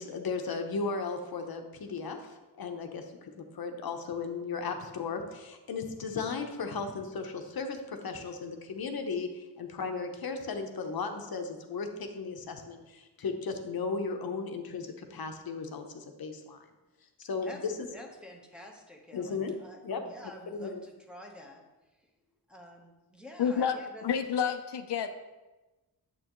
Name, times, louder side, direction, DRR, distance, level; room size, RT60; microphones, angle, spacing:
voice 1, 0.0-16.6 17.2-17.7 19.1-19.5 19.8-20.1 20.5-20.8, left 4 dB, 60° left, 5 dB, 0.9 m, -36 dB
voice 2, 17.9-21.6 22.0-22.1 22.5-24.1, left 1 dB, ahead, -1 dB, 1.0 m, -49 dB
voice 3, 23.4-25.2, left 7 dB, 90° left, 8 dB, 0.6 m, -29 dB
8.8 x 7.5 x 3.0 m, 1.1 s
wide cardioid pair, 130°, 40 cm